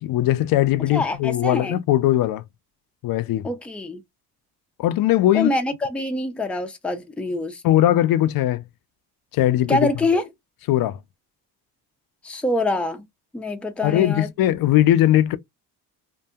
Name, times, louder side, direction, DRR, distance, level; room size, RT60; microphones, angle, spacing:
voice 1, 0.0-2.4 3.0-3.5 4.8-5.5 7.6-8.6 9.3-9.9 10.7-11.0 13.8-15.4, left 13 dB, 60° left, 0.5 m, -19 dB
voice 2, 0.9-1.8 3.4-4.0 5.3-7.6 9.7-10.3 12.2-13.0 13.3-14.3, left 2 dB, 5° left, 0.5 m, -25 dB
2.7 x 2.6 x 2.2 m
cardioid pair, 120°, 39 cm